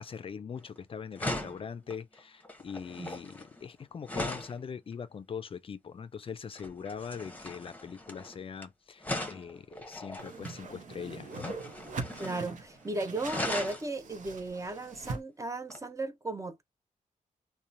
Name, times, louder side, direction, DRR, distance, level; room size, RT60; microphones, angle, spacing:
voice 1, 0.0-11.5, left 6 dB, 40° left, 0.4 m, -42 dB
sound 1, 0.6-0.8 1.2-4.6 6.6-8.6 9.0-10.6 11.3-12.5 12.7-12.8 13.2-13.9 15.7-15.8, left 1 dB, 10° left, 0.8 m, -38 dB
Whoosh swoosh swish, 10.2-15.2, right 3 dB, 70° right, 0.8 m, -42 dB
voice 2, 12.2-16.6, right 2 dB, 25° right, 0.5 m, -36 dB
2.8 x 2.1 x 2.5 m
cardioid pair, 95°, 14 cm